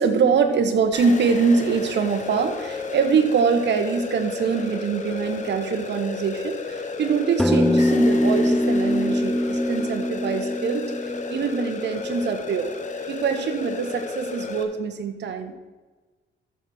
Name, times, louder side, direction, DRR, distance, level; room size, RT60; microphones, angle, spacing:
voice 1, 0.0-12.7 13.1-15.6, right 5 dB, 60° right, 6 dB, 1.5 m, -24 dB
sound 1, 0.9-14.6, left 4 dB, 40° left, 1.5 m, -33 dB
sound 2, 7.4-12.1, equal, ahead, 0.3 m, -23 dB
13.5 x 6.5 x 4.5 m, 1.3 s
cardioid pair, 90°, 20 cm